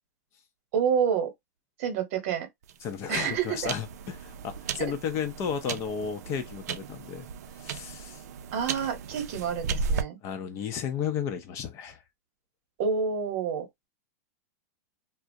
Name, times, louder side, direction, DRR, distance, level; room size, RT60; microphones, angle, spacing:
voice 1, 0.7-1.3 1.8-2.5 3.1-3.7 8.5-10.2 12.8-13.7, right 7 dB, 55° right, 1.0 m, -28 dB
sound 1, 2.6-10.0, right 5 dB, 75° right, 0.4 m, -36 dB
voice 2, 2.8-7.3 7.6-8.2 10.2-12.0, left 7 dB, 35° left, 0.5 m, -33 dB
2.3 x 2.0 x 2.6 m
supercardioid pair, 145°, 9 cm